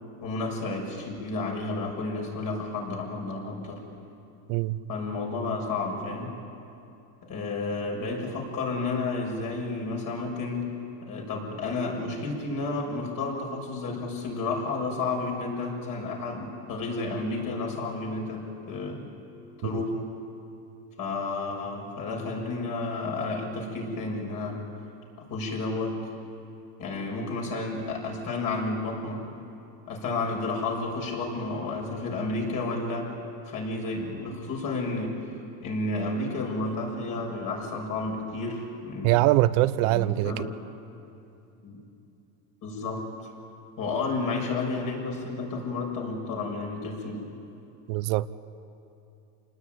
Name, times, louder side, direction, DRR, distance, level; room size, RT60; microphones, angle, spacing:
voice 1, 0.2-3.8 4.9-6.3 7.2-10.7 11.0-19.1 19.6-20.1 21.0-24.6 25.2-26.0 26.8-29.3 29.9-33.1 33.4-35.1 35.6-39.2 39.8-40.5 41.6-41.8 42.6-43.1 43.8-47.2, left 3 dB, 50° left, 0 dB, 6.8 m, -31 dB
voice 2, 39.0-40.4 47.9-48.3, right 17 dB, 75° right, 13 dB, 0.9 m, -23 dB
28.0 x 19.5 x 9.4 m, 2.8 s
cardioid pair, 135°, 43 cm